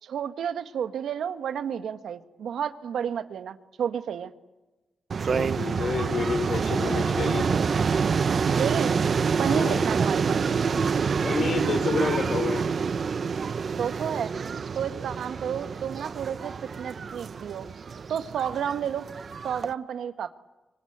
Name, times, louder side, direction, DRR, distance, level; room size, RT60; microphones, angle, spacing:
voice 1, 0.0-4.3 8.5-8.9 9.4-10.4 13.7-14.3 14.7-17.7 18.1-19.1 19.4-20.3, right 8 dB, 85° right, 10 dB, 1.5 m, -31 dB
sound 1, 5.1-19.7, right 5 dB, 55° right, 1.0 m, -27 dB
voice 2, 5.2-7.4 9.5-9.8 11.2-12.6, left 4 dB, 70° left, 10 dB, 4.2 m, -29 dB
25.5 x 24.0 x 9.4 m, 1.1 s
cardioid pair, 80°, 0 cm